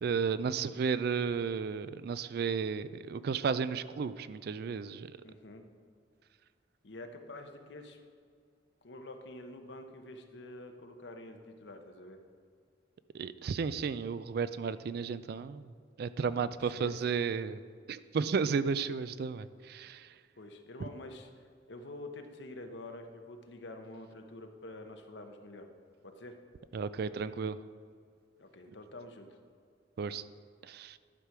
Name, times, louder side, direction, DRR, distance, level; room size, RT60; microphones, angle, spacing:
voice 1, 0.0-5.1 13.1-15.7 16.0-17.6 17.9-20.1 26.7-27.6 30.0-30.2 30.6-31.0, right 5 dB, 55° right, 15 dB, 0.3 m, -33 dB
voice 2, 5.2-5.6 6.8-8.0 8.8-12.2 16.4-16.9 20.4-21.3 21.7-25.7 26.0-26.4 28.4-29.4, left 2 dB, 70° left, 5 dB, 0.9 m, -47 dB
11.5 x 5.9 x 4.8 m, 2.2 s
head